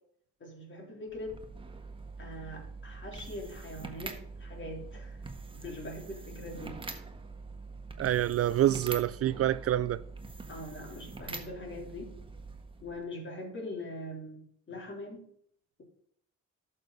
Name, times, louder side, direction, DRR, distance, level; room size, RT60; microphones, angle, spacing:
voice 1, 0.4-1.4 2.2-5.2 5.5-6.8 10.5-12.1 12.8-15.3, left 1 dB, 40° left, 3.7 m, -42 dB
sound 1, 1.1-13.0, right 3 dB, 15° right, 1.5 m, -44 dB
voice 2, 8.0-10.0, right 12 dB, 50° right, 0.4 m, -27 dB
11.5 x 6.7 x 4.0 m
cardioid pair, 90°, 30 cm